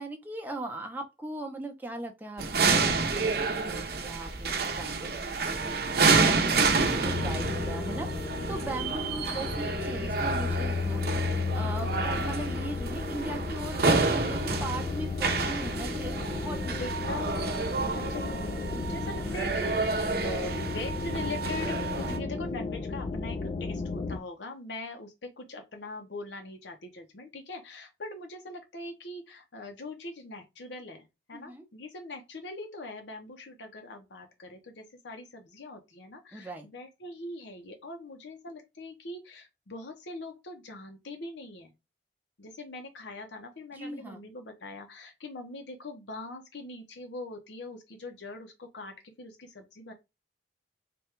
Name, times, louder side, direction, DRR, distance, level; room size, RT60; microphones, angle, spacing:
voice 1, 0.0-17.0 18.7-19.0 22.3-22.4 31.3-31.6 36.3-36.7 43.7-44.2, right 2 dB, 10° right, 0.6 m, -39 dB
sound 1, 2.4-22.2, right 4 dB, 60° right, 0.7 m, -29 dB
voice 2, 3.6-3.9 4.8-5.2 8.4-8.9 11.4-12.0 16.8-41.7 42.4-49.9, left 2 dB, 80° left, 0.8 m, -42 dB
sound 2, 7.0-24.2, left 4 dB, 35° left, 0.3 m, -34 dB
3.5 x 2.2 x 4.4 m
head